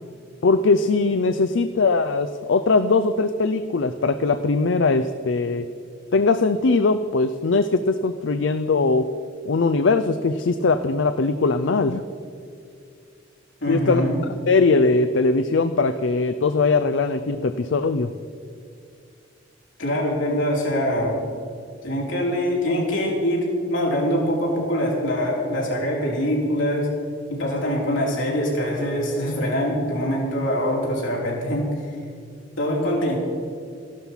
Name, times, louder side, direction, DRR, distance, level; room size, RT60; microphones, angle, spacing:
voice 1, 0.4-5.7 6.1-9.1 9.5-12.0 13.7-14.1 14.5-18.1, left 3 dB, 70° left, 10 dB, 0.5 m, -20 dB
voice 2, 13.6-14.2 19.8-21.2 21.8-26.9 27.3-31.7 32.6-33.2, equal, 85° left, -2 dB, 3.8 m, -23 dB
13.5 x 12.0 x 5.7 m, 2.3 s
head